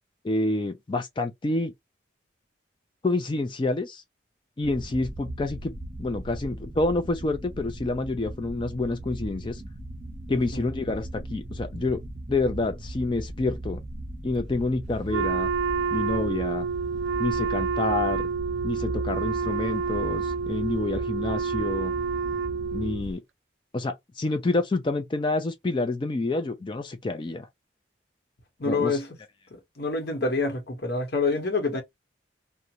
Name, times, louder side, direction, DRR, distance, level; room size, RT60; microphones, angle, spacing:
voice 1, 0.2-1.7 3.0-4.0 4.6-5.7 6.0-9.6 10.3-12.0 12.3-13.8 14.2-15.5 15.9-16.7 17.2-18.3 18.6-21.9 22.7-23.2 23.7-27.5 28.6-29.0, left 2 dB, 25° left, 0.3 m, -28 dB
sound 1, 4.6-23.1, right 1 dB, 30° right, 0.6 m, -38 dB
voice 2, 10.3-10.7 28.6-29.1 29.5-31.8, left 3 dB, 55° left, 1.0 m, -27 dB
Wind instrument woodwind instrument, 15.1-23.0, right 5 dB, 70° right, 0.3 m, -28 dB
2.5 x 2.1 x 2.8 m
head